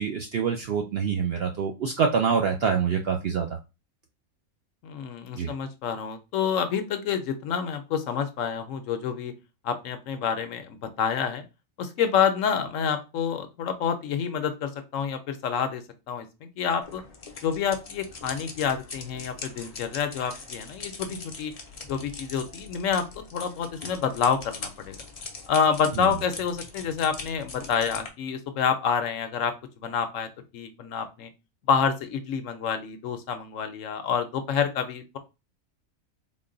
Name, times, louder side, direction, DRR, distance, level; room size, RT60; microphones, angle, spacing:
voice 1, 0.0-3.6 5.4-5.5 26.0-26.1, right 6 dB, 65° right, 4 dB, 0.6 m, -26 dB
voice 2, 4.8-9.3 9.6-11.4 11.8-15.8 16.1-17.0 17.4-21.5 21.9-23.0 23.3-25.0 25.5-30.3 30.5-31.3 31.7-35.2, left 7 dB, 70° left, 9 dB, 0.9 m, -28 dB
sound 1, 16.8-28.1, left 4 dB, 45° left, 0.5 m, -41 dB
3.9 x 2.2 x 3.7 m, 0.26 s
omnidirectional pair, 1.5 m